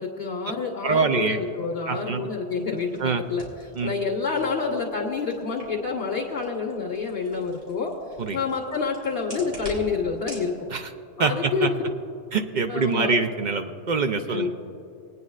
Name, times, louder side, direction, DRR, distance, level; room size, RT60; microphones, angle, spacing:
voice 1, 0.0-2.9 3.3-3.4 3.8-7.9 8.3-10.7 11.2-11.9 12.7-13.2 14.3-14.5, left 5 dB, 60° left, -3 dB, 1.7 m, -28 dB
voice 2, 0.8-1.4 1.9-2.3 3.0-3.2 3.7-3.9 8.2-8.4 10.7-10.9 11.2-11.7 12.3-14.5, right 4 dB, 55° right, 7 dB, 0.6 m, -24 dB
sound 1, 2.5-10.5, left 1 dB, 85° right, 3.1 m, -46 dB
22.0 x 9.2 x 2.4 m, 2.7 s
omnidirectional pair, 1.1 m